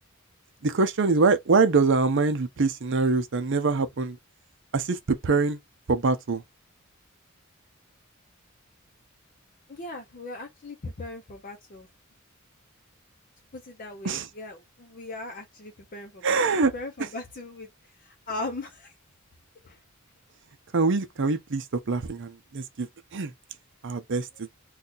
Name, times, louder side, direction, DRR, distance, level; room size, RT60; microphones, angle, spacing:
voice 1, 0.6-4.2 4.7-5.6 5.9-6.4 14.0-14.3 16.2-16.7 20.7-23.3 23.8-24.5, right 4 dB, 60° right, 0.7 m, -24 dB
voice 2, 9.7-11.9 13.5-16.4 16.7-17.7 18.0-18.9 19.6-19.8, left 2 dB, 40° left, 0.6 m, -38 dB
2.8 x 2.3 x 3.8 m
head